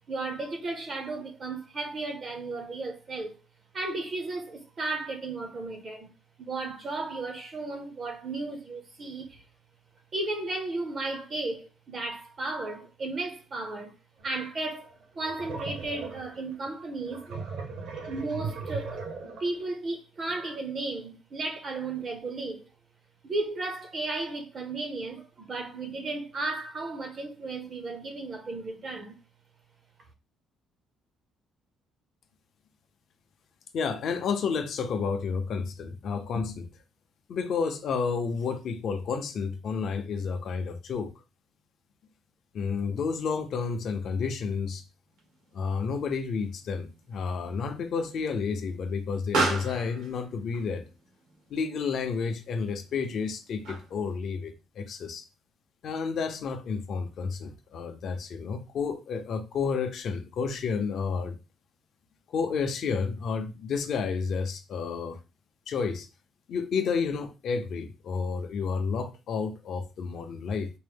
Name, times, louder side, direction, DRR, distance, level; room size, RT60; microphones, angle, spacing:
voice 1, 0.1-3.4 3.7-6.1 6.4-9.4 10.1-13.9 14.2-17.4 18.1-19.0 19.4-22.6 23.2-29.1, right 2 dB, 30° right, 0.6 m, -34 dB
sound 1, 14.2-14.4 14.8-19.7, right 4 dB, 60° right, 0.8 m, -38 dB
voice 2, 33.7-36.7 37.3-41.1 42.5-44.8 45.5-50.8 51.5-55.2 55.8-61.4 62.3-65.2 65.7-66.1 66.5-70.7, left 5 dB, 45° left, 0.6 m, -31 dB
Explosion, 45.1-54.2, right 3 dB, 85° right, 1.3 m, -37 dB
4.4 x 2.0 x 3.4 m
cardioid pair, 175°, 0 cm